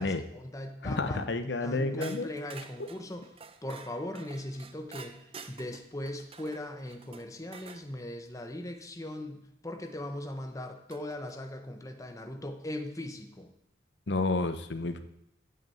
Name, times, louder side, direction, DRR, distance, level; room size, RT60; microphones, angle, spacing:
voice 1, 0.0-1.3 1.6-3.3 3.6-13.5, left 1 dB, 20° left, 5 dB, 1.0 m, -39 dB
voice 2, 0.8-2.3 14.1-15.0, left 3 dB, 80° left, 10 dB, 0.8 m, -30 dB
sound 1, 2.0-7.9 9.8-9.9 10.9-11.4, right 5 dB, 30° right, 0.7 m, -49 dB
8.1 x 7.9 x 7.8 m, 0.75 s
head